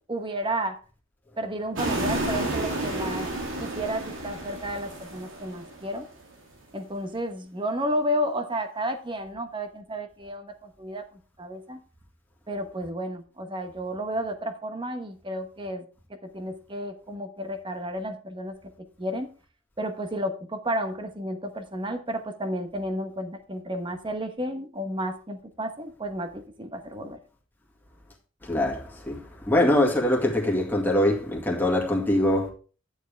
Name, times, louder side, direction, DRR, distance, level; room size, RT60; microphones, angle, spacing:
voice 1, 0.1-0.8 1.4-3.3 3.6-6.1 6.7-11.8 12.5-15.9 16.3-18.6 19.0-19.3 19.8-27.2, equal, 25° right, 1.0 m, -32 dB
sound 1, 1.7-6.0, right 1 dB, 70° right, 2.7 m, -31 dB
voice 2, 28.4-32.5, left 1 dB, 10° left, 2.0 m, -23 dB
11.0 x 7.4 x 3.4 m
head